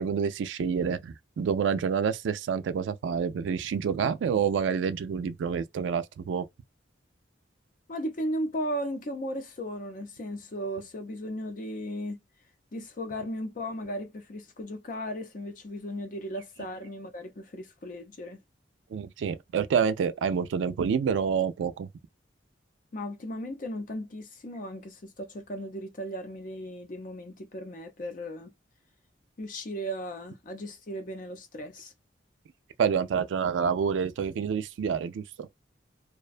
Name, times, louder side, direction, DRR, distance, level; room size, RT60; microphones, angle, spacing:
voice 1, 0.0-6.5 18.9-21.9 32.8-35.5, right 6 dB, 80° right, 0.3 m, -28 dB
voice 2, 7.9-12.2 12.7-18.4 22.9-28.5 29.4-31.9, equal, 45° left, 0.5 m, -36 dB
2.4 x 2.2 x 2.4 m
head